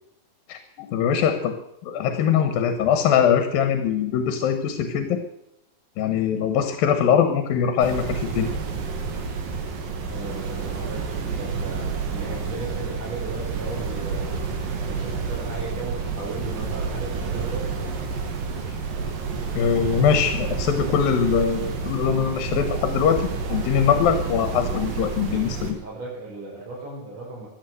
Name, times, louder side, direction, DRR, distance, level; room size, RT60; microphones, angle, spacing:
voice 1, 0.5-1.5 1.8-5.2 6.0-8.5 19.5-25.8, left 8 dB, 85° left, 8 dB, 3.0 m, -22 dB
sound 1, 7.8-25.7, right 5 dB, 75° right, 3.6 m, -29 dB
voice 2, 10.1-14.5 14.9-17.8 25.3-27.5, right 2 dB, 50° right, -3 dB, 6.6 m, -36 dB
sound 2, 14.1-17.1 17.3-24.0, right 2 dB, 30° right, 4.7 m, -42 dB
15.5 x 10.5 x 7.8 m, 0.81 s
omnidirectional pair, 4.0 m